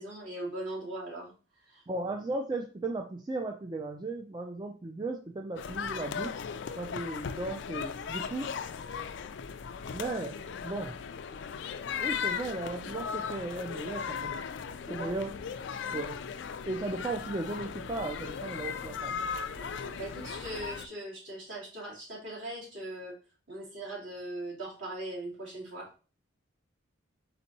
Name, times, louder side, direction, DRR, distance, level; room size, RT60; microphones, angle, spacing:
voice 1, 0.0-1.8 14.9-15.1 19.5-23.1 23.5-25.9, right 1 dB, 65° right, -5 dB, 2.6 m, -40 dB
voice 2, 1.9-6.3 6.8-8.6 9.9-10.4 10.6-11.0 12.0-14.3 14.9-15.3 15.9-16.2 16.7-19.1, right 2 dB, 20° right, 2 dB, 0.4 m, -36 dB
sound 1, 5.6-20.9, left 6 dB, 60° left, 0.3 m, -37 dB
4.3 x 4.2 x 2.7 m, 0.36 s
head